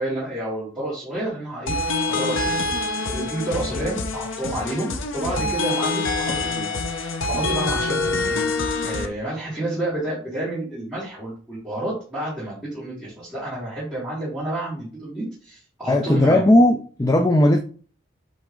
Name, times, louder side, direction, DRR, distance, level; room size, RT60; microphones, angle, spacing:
voice 1, 0.0-8.4 8.8-16.4, right 1 dB, 5° right, 3.0 m, -30 dB
sound 1, 1.7-9.1, left 3 dB, 75° left, 1.0 m, -25 dB
voice 2, 15.9-17.6, left 1 dB, 15° left, 0.5 m, -17 dB
8.1 x 3.9 x 3.7 m
head